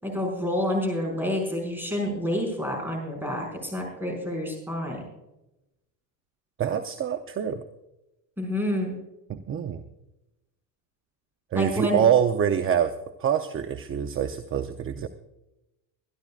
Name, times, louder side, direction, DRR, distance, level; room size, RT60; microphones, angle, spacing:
voice 1, 0.0-5.0 8.4-9.0 11.5-12.1, left 1 dB, 5° right, 1 dB, 5.5 m, -28 dB
voice 2, 6.6-7.6 9.3-9.8 11.5-12.9 13.2-15.1, right 8 dB, 30° right, 9 dB, 0.7 m, -25 dB
24.5 x 11.5 x 2.4 m, 0.93 s
cardioid pair, 135°, 47 cm